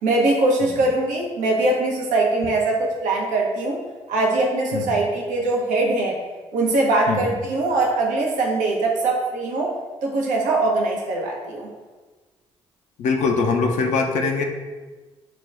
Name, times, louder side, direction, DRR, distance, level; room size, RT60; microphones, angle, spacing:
voice 1, 0.0-3.8 4.1-6.2 6.5-11.7, right 2 dB, 70° right, -1 dB, 0.6 m, -22 dB
voice 2, 13.0-14.4, left 4 dB, 60° left, 2 dB, 0.5 m, -22 dB
5.7 x 2.2 x 2.4 m, 1.3 s
hypercardioid pair, 45°, 14 cm